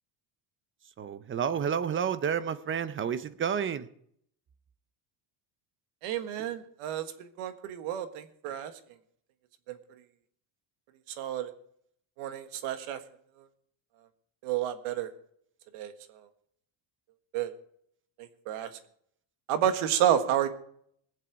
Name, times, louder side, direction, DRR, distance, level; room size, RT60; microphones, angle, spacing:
voice 1, 1.0-3.9, right 7 dB, 25° right, 15 dB, 0.6 m, -30 dB
voice 2, 6.0-8.7 9.7-9.8 11.2-11.5 12.2-13.0 14.4-15.1 15.7-15.9 17.3-17.5 18.2-18.7 19.5-20.5, right 10 dB, 85° right, 10 dB, 1.6 m, -30 dB
21.5 x 7.6 x 4.7 m, 0.67 s
cardioid pair, 145°, 50 cm